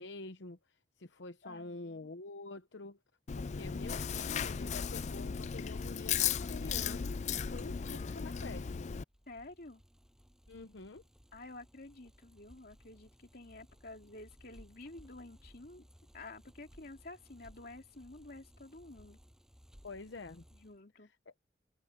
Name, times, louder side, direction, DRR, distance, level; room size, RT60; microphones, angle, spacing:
voice 1, 0.0-3.0 3.3-8.9 10.5-11.0 19.8-20.4 21.0-21.1, left 3 dB, 70° left, 0.9 m, -47 dB
voice 2, 1.4-2.1 9.3-9.8 11.3-15.9 16.1-19.2 20.5-21.1, left 2 dB, 55° left, 2.8 m, -51 dB
Chewing mastication, 3.3-9.0, left 7 dB, 40° left, 0.4 m, -36 dB
Bicycle, 9.1-20.8, equal, 5° right, 8.0 m, -61 dB
head